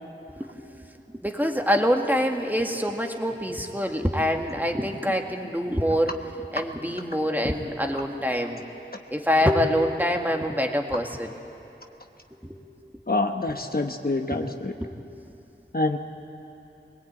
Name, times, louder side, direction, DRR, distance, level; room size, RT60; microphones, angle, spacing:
voice 1, 0.4-0.7 1.1-6.1 6.5-8.6 9.1-11.3 12.4-12.6 14.3-14.4 14.8-14.9, equal, 10° right, 2 dB, 2.0 m, -25 dB
voice 2, 13.1-14.7 15.7-16.0, left 2 dB, 50° left, 4 dB, 1.2 m, -26 dB
23.5 x 19.0 x 8.9 m, 2.9 s
wide cardioid pair, 40°, 20 cm